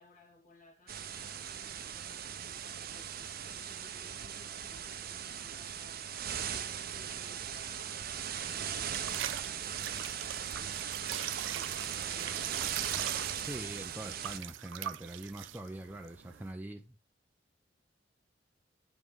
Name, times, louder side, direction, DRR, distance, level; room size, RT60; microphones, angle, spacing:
voice 1, 0.0-12.8, left 2 dB, 45° left, 2.1 m, -59 dB
sound 1, 0.9-14.4, right 8 dB, 55° right, 0.7 m, -39 dB
sound 2, 8.5-16.5, right 12 dB, 75° right, 0.4 m, -42 dB
voice 2, 13.4-17.0, right 1 dB, 10° right, 0.5 m, -43 dB
9.4 x 5.1 x 3.6 m
head